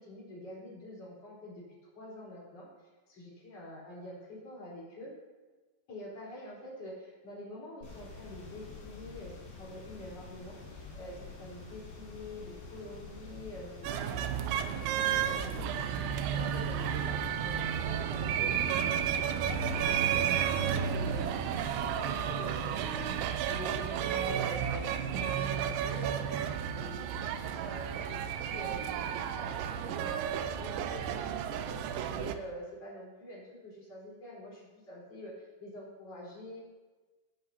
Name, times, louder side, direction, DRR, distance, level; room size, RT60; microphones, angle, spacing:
voice 1, 0.0-1.6 1.9-2.7 3.1-5.1 5.9-23.1 23.5-27.0 27.4-36.6, left 1 dB, 30° left, -5 dB, 4.6 m, -46 dB
sound 1, 7.8-23.2, left 3 dB, 55° left, 4.9 m, -48 dB
sound 2, 13.8-32.4, right 8 dB, 80° right, 2.7 m, -32 dB
20.5 x 11.0 x 2.8 m, 1.3 s
omnidirectional pair, 5.8 m